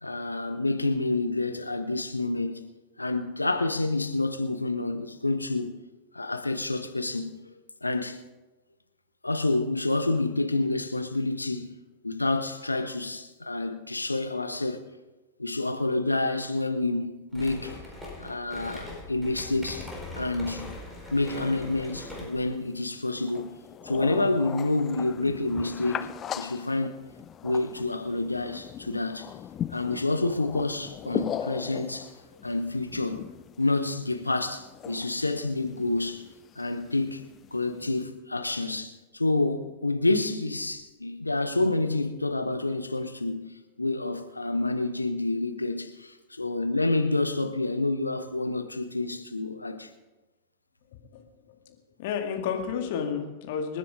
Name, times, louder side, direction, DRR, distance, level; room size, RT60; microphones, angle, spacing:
voice 1, 0.0-2.6 3.0-5.7 6.1-7.3 7.8-8.2 9.2-11.7 12.0-14.8 15.4-17.8 18.2-19.9 20.1-20.7 21.1-23.5 23.8-27.0 27.4-29.3 29.7-32.1 32.4-33.3 33.6-36.2 36.6-37.2 37.5-43.5 43.8-49.9, left 2 dB, 85° left, 1.0 m, -28 dB
sound 1, 17.3-22.5, left 2 dB, 5° right, 4.6 m, -41 dB
sound 2, 19.7-38.0, left 9 dB, 30° left, 0.5 m, -40 dB
voice 2, 51.5-53.8, left 7 dB, 50° left, 2.2 m, -31 dB
26.5 x 10.0 x 3.7 m
figure-of-eight pair, 90°, 0 cm